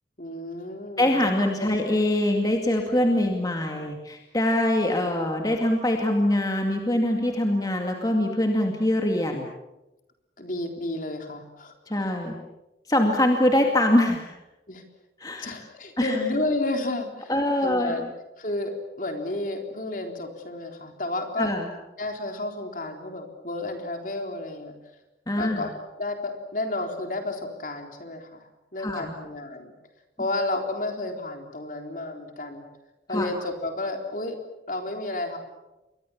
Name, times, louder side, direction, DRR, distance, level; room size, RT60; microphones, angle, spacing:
voice 1, 0.2-1.1 1.6-1.7 10.4-12.1 14.7-14.8 15.4-17.3 17.6-18.1 18.4-21.5 22.0-24.7 25.3-25.7 26.0-29.7 30.2-32.6 33.1-34.4 34.7-35.4, left 2 dB, 45° left, 4 dB, 3.9 m, -31 dB
voice 2, 1.0-9.5 11.9-12.3 12.9-14.4 15.2-15.5 16.0-16.2 17.3-18.0 21.4-21.7 25.3-25.7 28.8-29.1 33.1-33.3, left 1 dB, 20° left, 2 dB, 2.2 m, -23 dB
29.0 x 23.0 x 7.2 m, 1.0 s
head